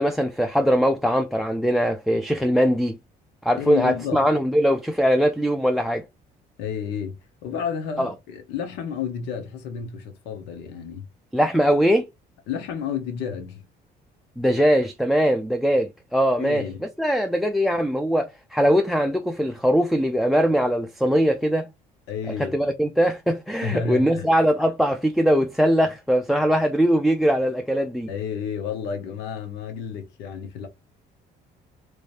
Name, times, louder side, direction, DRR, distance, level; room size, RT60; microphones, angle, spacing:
voice 1, 0.0-3.0 3.4-6.0 8.0-8.1 11.3-12.0 14.4-16.7 17.0-21.7 22.4-28.1, equal, ahead, 0.4 m, -21 dB
voice 2, 3.6-4.2 6.6-11.1 12.5-13.6 16.4-16.8 22.1-22.6 23.6-24.3 28.1-30.7, left 7 dB, 90° left, 1.0 m, -31 dB
3.2 x 2.6 x 3.2 m
cardioid pair, 110°, 17 cm